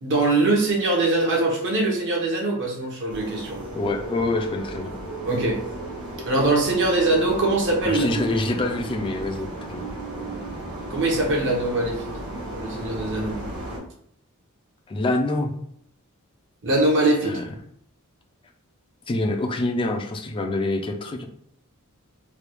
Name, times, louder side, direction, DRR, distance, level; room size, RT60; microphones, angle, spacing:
voice 1, 0.0-3.6 5.3-5.6 6.2-8.2 10.9-12.1 12.5-13.3 16.6-17.4, right 2 dB, 55° right, -1 dB, 0.9 m, -22 dB
sound 1, 3.1-13.8, right 1 dB, 80° right, 1.2 m, -34 dB
voice 2, 3.7-4.9 7.8-9.9 14.9-15.5 17.2-17.4 19.1-21.3, left 2 dB, 25° left, 3 dB, 0.4 m, -26 dB
3.3 x 2.3 x 3.0 m, 0.69 s
head